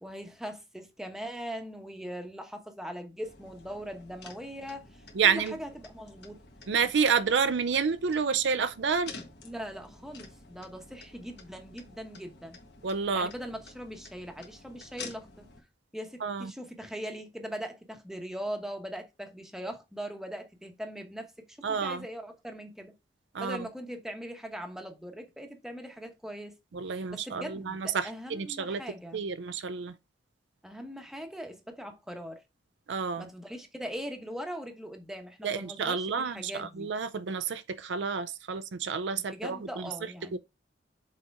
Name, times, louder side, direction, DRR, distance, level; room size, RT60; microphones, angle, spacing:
voice 1, 0.0-6.4 9.4-12.6 13.1-15.3 15.9-22.9 23.4-26.5 26.9-29.2 30.6-32.4 33.2-36.9 39.3-40.4, equal, 5° right, 0.9 m, -40 dB
sound 1, 3.2-15.6, left 3 dB, 60° left, 1.4 m, -50 dB
voice 2, 5.2-5.5 6.7-9.1 12.8-13.3 16.2-16.5 21.6-22.0 23.3-23.6 26.7-28.8 29.1-29.9 32.9-33.3 35.4-39.8, right 6 dB, 70° right, 0.5 m, -29 dB
6.4 x 4.2 x 3.5 m
head